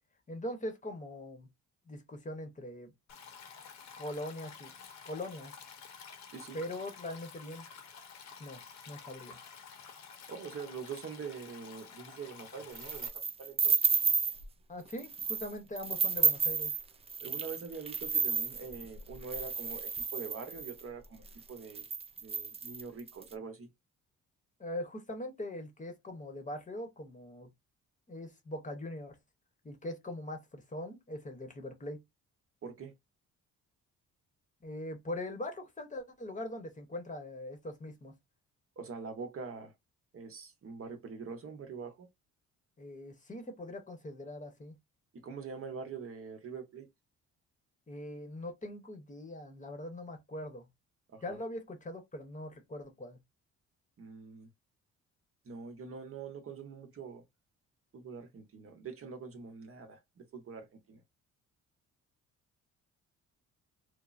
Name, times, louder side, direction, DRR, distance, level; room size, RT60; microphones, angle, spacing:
voice 1, 0.3-1.5 1.9-2.9 4.0-4.7 5.0-5.5 6.5-7.7 8.4-9.4 14.7-16.8 24.6-27.5 28.1-29.2 29.6-32.0 34.6-38.1 42.8-44.8 47.9-50.7 51.2-53.2, left 1 dB, 25° left, 0.8 m, -41 dB
Stream, 3.1-13.1, left 6 dB, 65° left, 0.9 m, -51 dB
voice 2, 10.3-13.1 13.4-13.8 17.2-21.9 22.2-23.7 32.6-32.9 38.8-39.7 40.1-42.1 45.1-46.9 51.1-51.4 54.0-54.5 55.4-57.2 57.9-61.0, right 5 dB, 45° right, 0.8 m, -44 dB
sound 1, 12.7-14.4 14.9-15.5 15.8-20.8 21.4-21.5 21.7-23.2, right 6 dB, 20° right, 0.3 m, -31 dB
3.2 x 2.0 x 2.4 m
cardioid pair, 90°, 30 cm